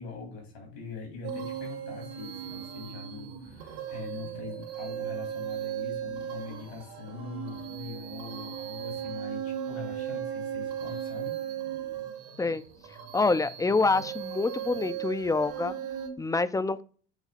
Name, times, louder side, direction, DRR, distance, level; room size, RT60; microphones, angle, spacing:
voice 1, 0.0-11.4 11.8-11.9, left 5 dB, 85° left, 0 dB, 3.3 m, -42 dB
sound 1, 1.2-16.1, right 9 dB, 75° right, 2.1 m, -37 dB
voice 2, 13.1-15.7 16.2-16.8, left 3 dB, 10° left, 14 dB, 0.4 m, -26 dB
8.2 x 3.2 x 3.7 m, 0.41 s
hypercardioid pair, 80°, 31 cm